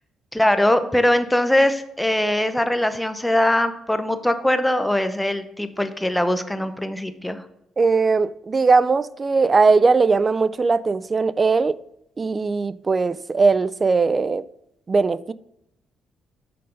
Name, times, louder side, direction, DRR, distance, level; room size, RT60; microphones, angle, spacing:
voice 1, 0.3-7.4, left 1 dB, 5° left, 0.7 m, -21 dB
voice 2, 7.8-11.8 12.2-14.4 14.9-15.3, right 4 dB, 30° right, 0.3 m, -19 dB
6.8 x 5.3 x 5.1 m
cardioid pair, 90°, 0 cm